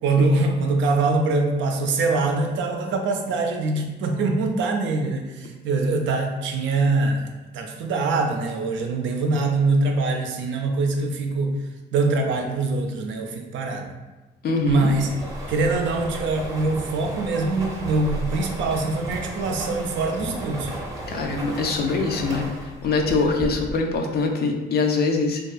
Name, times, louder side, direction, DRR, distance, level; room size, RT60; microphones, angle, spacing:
voice 1, 0.0-11.6 11.9-13.9 14.7-15.1 15.5-20.7, right 3 dB, 70° right, 3 dB, 0.4 m, -23 dB
voice 2, 14.4-14.9 21.1-22.4 22.8-25.4, left 4 dB, 55° left, 3 dB, 0.4 m, -23 dB
sound 1, 14.7-24.0, right 1 dB, 15° right, 0.7 m, -34 dB
2.6 x 2.3 x 2.3 m, 1.2 s
cardioid pair, 90°, 20 cm